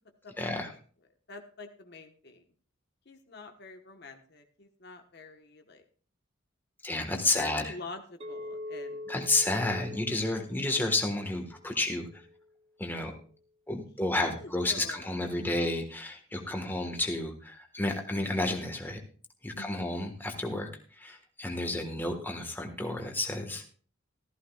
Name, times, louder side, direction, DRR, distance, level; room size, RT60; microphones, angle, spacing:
voice 1, 0.4-0.7 6.8-7.7 9.1-12.1 12.8-13.1 13.7-19.0 19.4-23.6, left 2 dB, 10° left, 3 dB, 1.5 m, -31 dB
voice 2, 1.3-2.4 3.0-5.8 7.1-9.0 14.0-15.1 19.5-19.9, left 3 dB, 55° left, 5 dB, 1.2 m, -46 dB
Chink clink, 8.2-12.5, left 2 dB, 30° right, 0.8 m, -44 dB
15.0 x 14.0 x 2.4 m, 0.41 s
head